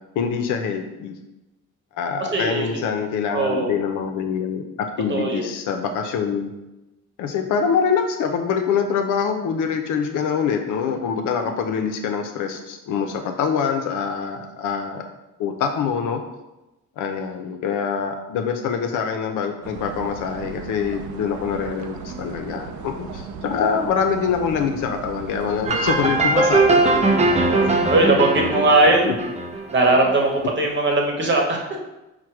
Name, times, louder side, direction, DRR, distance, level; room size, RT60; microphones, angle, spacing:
voice 1, 0.2-1.2 1.9-6.5 7.2-15.0 15.4-16.2 17.0-26.8 27.6-28.3 29.0-29.1, left 6 dB, 85° left, 5 dB, 0.6 m, -25 dB
voice 2, 2.3-2.8 3.3-3.8 5.1-5.4 27.4-29.1 29.7-31.8, right 2 dB, 40° right, 1 dB, 1.0 m, -19 dB
sound 1, 19.6-28.0, right 5 dB, 70° right, 0.5 m, -36 dB
sound 2, 25.6-30.2, right 2 dB, 25° right, 0.5 m, -20 dB
4.6 x 2.2 x 4.5 m, 1.0 s
cardioid pair, 90°, 30 cm